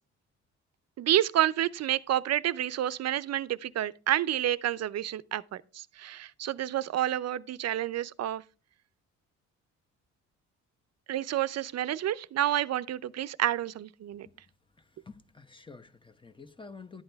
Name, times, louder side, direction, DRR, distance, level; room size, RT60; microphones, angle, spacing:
voice 1, 1.0-8.4 11.1-14.3, right 12 dB, 60° right, 0.6 m, -29 dB
voice 2, 15.1-17.0, left 4 dB, 15° left, 1.1 m, -48 dB
12.0 x 8.8 x 3.5 m
cardioid pair, 90°, 30 cm